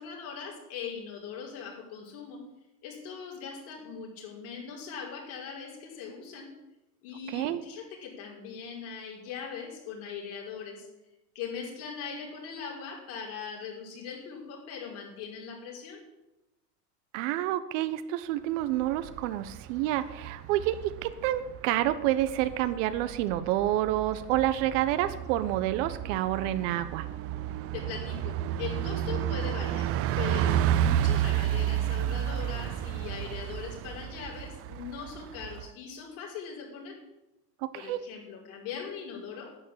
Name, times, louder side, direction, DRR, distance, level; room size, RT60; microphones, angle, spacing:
voice 1, 0.0-2.4 2.8-6.5 7.0-10.9 11.3-16.0 27.7-37.0 37.7-39.5, left 6 dB, 60° left, -1 dB, 5.6 m, -40 dB
voice 2, 7.3-7.6 17.1-27.1 37.6-38.0, right 13 dB, 50° right, 12 dB, 1.1 m, -28 dB
Bus, 18.6-35.7, right 11 dB, 30° right, 0.6 m, -32 dB
11.0 x 9.0 x 8.7 m, 0.97 s
hypercardioid pair, 95°, 49 cm